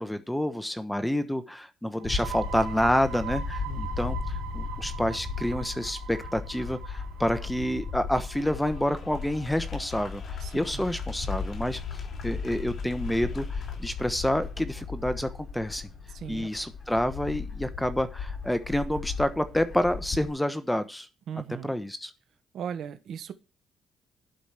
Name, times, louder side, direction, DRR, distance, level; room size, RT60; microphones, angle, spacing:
voice 1, 0.0-11.8 12.2-15.9 16.3-21.1 21.6-22.1, equal, 5° left, 1.1 m, -28 dB
sound 1, 1.9-9.4, right 10 dB, 90° right, 1.1 m, -41 dB
Bird / Wind, 2.0-20.3, left 5 dB, 40° left, 4.3 m, -36 dB
sound 2, 8.2-14.1, left 5 dB, 60° left, 3.1 m, -50 dB
voice 2, 10.4-10.9 16.1-16.5 21.3-21.7 22.5-23.3, right 8 dB, 70° right, 1.3 m, -37 dB
11.5 x 5.1 x 7.7 m
cardioid pair, 90°, 0 cm